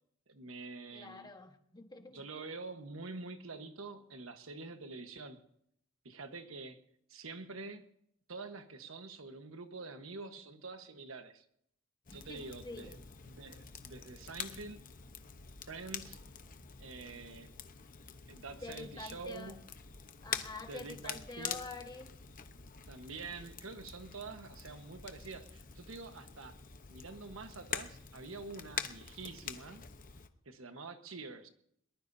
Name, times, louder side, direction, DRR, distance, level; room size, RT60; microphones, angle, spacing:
voice 1, 0.3-1.3 2.1-5.4 6.0-6.8 7.1-7.8 8.3-11.4 12.1-13.0 13.3-14.8 15.7-16.2 16.8-17.5 18.3-19.6 20.7-21.6 22.9-26.5 26.9-29.8 30.4-31.5, right 3 dB, 80° right, 7 dB, 1.3 m, -46 dB
voice 2, 0.9-2.2 12.1-13.0 18.6-19.5 20.2-22.1, left 3 dB, 20° left, 5 dB, 1.4 m, -47 dB
Crackle, 12.1-30.3, left 7 dB, 45° left, 1.0 m, -46 dB
22.0 x 20.0 x 2.7 m, 0.72 s
head